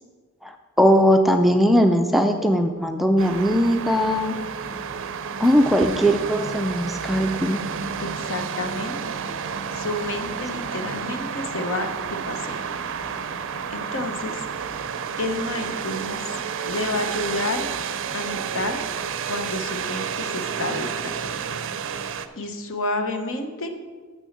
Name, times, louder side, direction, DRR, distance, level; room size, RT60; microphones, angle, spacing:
voice 1, 0.4-4.3 5.4-7.6, equal, ahead, 5 dB, 0.4 m, -19 dB
sound 1, 3.2-22.3, right 6 dB, 60° right, 0.5 m, -30 dB
voice 2, 8.0-9.2 9.7-11.9 12.2-12.6 13.7-14.4 15.2-16.2 16.7-17.7 18.1-18.8 19.3-21.3 22.4-23.7, left 2 dB, 65° left, 6 dB, 1.0 m, -30 dB
6.9 x 6.3 x 6.5 m, 1.5 s
head